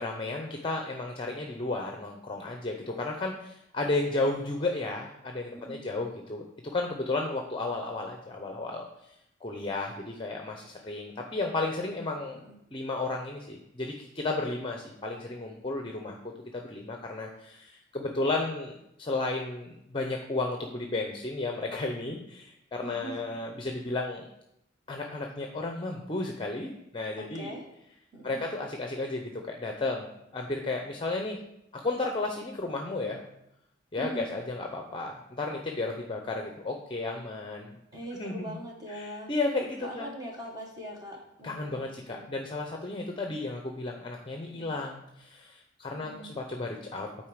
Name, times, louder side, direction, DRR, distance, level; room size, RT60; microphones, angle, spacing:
voice 1, 0.0-6.4 6.7-8.9 9.4-12.4 12.7-16.2 16.5-24.2 24.9-27.5 28.2-31.4 31.8-33.2 33.9-37.7 38.2-38.5 38.9-40.1 41.4-47.1, left 2 dB, 25° left, 2 dB, 0.6 m, -33 dB
voice 2, 3.8-4.5 5.5-5.8 12.4-12.6 22.8-23.4 27.2-27.6 28.1-28.4 34.0-34.3 37.9-39.3 39.8-42.3 44.5-44.8 45.9-46.4, right 1 dB, 20° right, 0 dB, 1.4 m, -42 dB
9.0 x 4.4 x 4.9 m, 0.81 s
head